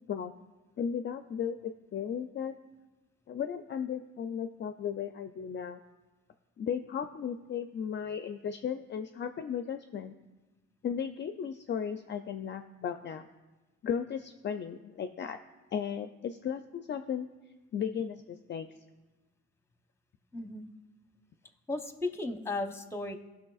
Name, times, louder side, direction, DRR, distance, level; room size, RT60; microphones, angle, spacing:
voice 1, 0.8-2.5 3.3-5.8 6.6-10.1 10.8-13.3 13.8-15.4 15.7-17.3 17.7-18.7, left 7 dB, 40° left, 8 dB, 0.4 m, -35 dB
voice 2, 20.3-20.7 21.7-23.2, left 2 dB, 10° left, 7 dB, 0.8 m, -35 dB
16.0 x 6.1 x 2.4 m, 1.2 s
cardioid pair, 90°, 30 cm